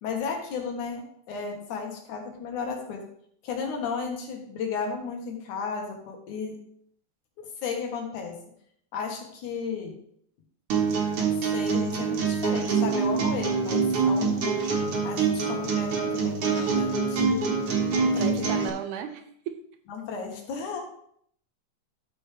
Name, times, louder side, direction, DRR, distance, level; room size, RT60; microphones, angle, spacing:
voice 1, 0.0-3.1 3.4-6.6 7.4-8.4 8.9-10.0 11.3-14.6 15.0-17.6 18.1-18.6 19.9-20.8, left 5 dB, 75° left, 2 dB, 2.8 m, -34 dB
sound 1, 10.7-18.7, right 5 dB, 55° right, 1.9 m, -25 dB
voice 2, 17.9-19.5, right 9 dB, 80° right, 7 dB, 2.1 m, -35 dB
11.5 x 6.7 x 3.3 m, 0.67 s
omnidirectional pair, 3.6 m